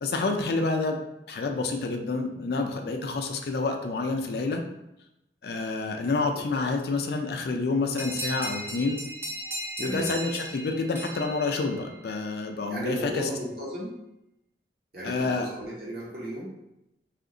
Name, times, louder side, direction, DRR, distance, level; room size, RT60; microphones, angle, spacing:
voice 1, 0.0-4.6 5.4-9.0 9.8-13.3 15.0-15.5, left 3 dB, 60° left, 4 dB, 0.4 m, -28 dB
sound 1, 8.0-12.2, right 1 dB, 15° right, 0.4 m, -37 dB
voice 2, 9.8-10.1 12.7-14.0 14.9-16.6, equal, 55° right, -5 dB, 1.1 m, -35 dB
2.8 x 2.5 x 3.7 m, 0.87 s
head